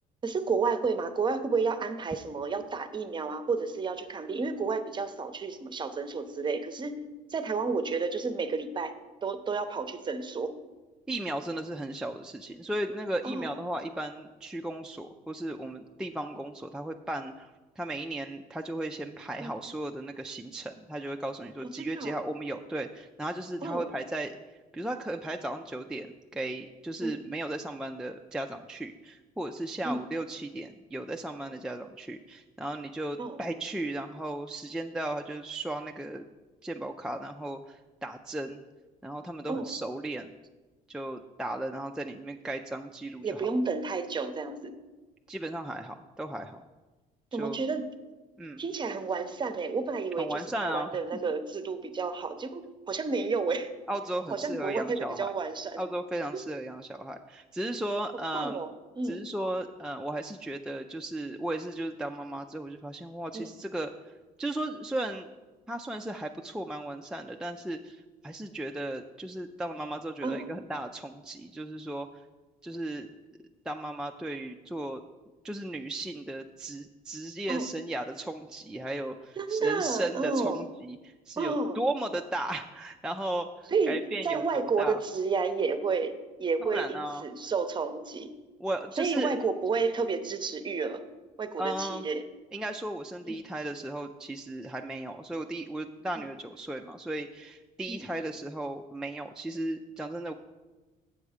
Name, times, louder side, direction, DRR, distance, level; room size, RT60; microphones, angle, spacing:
voice 1, 0.2-6.9 7.3-8.9 9.2-10.6 13.2-13.6 19.4-19.5 21.8-22.2 23.6-23.9 27.0-27.2 29.8-30.0 33.2-33.4 39.5-39.7 43.2-44.7 47.3-47.8 48.6-53.7 54.3-55.8 58.3-58.7 58.9-59.2 63.3-63.5 70.2-70.5 77.5-77.7 79.4-80.6 81.4-81.8 83.7-84.0 84.2-88.3 89.0-91.0 91.4-92.2 93.3-93.4 96.2-96.3 97.9-98.1, right 4 dB, 25° right, 10 dB, 0.7 m, -31 dB
voice 2, 11.1-17.5 17.8-24.3 24.7-26.1 26.3-36.2 36.6-38.6 39.0-40.3 40.9-43.5 45.3-46.6 47.3-47.6 48.4-48.6 50.2-50.9 53.9-55.3 55.8-58.6 59.0-63.9 64.4-65.3 65.7-72.1 72.6-73.1 73.7-75.0 75.4-85.0 86.6-87.2 88.6-89.3 91.6-92.0 92.5-100.3, right 1 dB, 5° right, 3 dB, 0.3 m, -35 dB
7.3 x 6.8 x 4.9 m, 1.2 s
cardioid pair, 110°, 17 cm